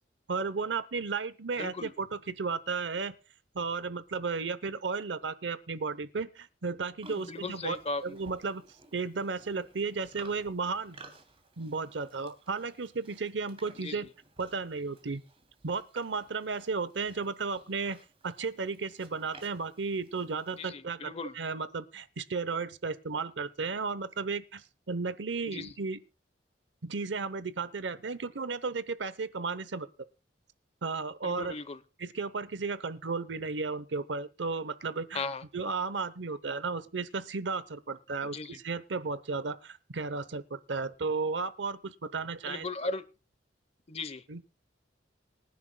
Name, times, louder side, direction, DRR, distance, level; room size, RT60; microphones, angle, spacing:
voice 1, 0.3-3.1 3.5-7.8 8.0-8.6 8.9-11.0 11.6-14.1 14.4-15.2 15.6-18.0 18.2-26.0 26.8-29.9 30.8-31.5 32.0-35.3 35.5-42.7 44.3-44.4, right 4 dB, 70° right, 0.8 m, -34 dB
voice 2, 1.6-1.9 7.2-8.2 13.8-14.0 20.6-21.4 25.5-25.7 31.2-31.8 35.1-35.4 38.2-38.6 42.5-43.0 43.9-44.2, left 3 dB, 35° left, 0.9 m, -37 dB
Livestock farm animals working animals, 7.0-20.7, right 2 dB, 30° right, 2.9 m, -56 dB
25.5 x 10.5 x 2.2 m
head